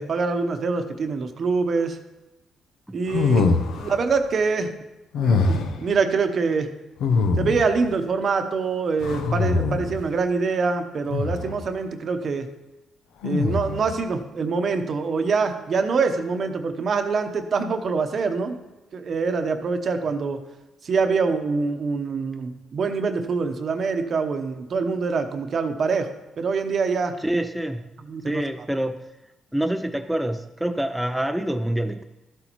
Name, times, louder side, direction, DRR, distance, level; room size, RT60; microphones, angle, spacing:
voice 1, 0.0-2.0 2.9-4.7 5.2-6.7 7.4-12.5 13.2-18.6 18.9-20.4 20.8-26.1 26.4-27.1 28.1-28.4, right 4 dB, 50° right, 7 dB, 0.9 m, -25 dB
sound 1, 3.1-4.0 5.1-5.9 7.0-7.8 9.0-10.0 11.1-11.6 13.2-13.9, left 4 dB, 80° left, 0.7 m, -23 dB
voice 2, 27.2-27.8 28.2-29.1 29.5-32.0, right 1 dB, 5° right, 6 dB, 0.4 m, -26 dB
13.5 x 8.0 x 3.0 m, 1.0 s
cardioid pair, 90°, 0 cm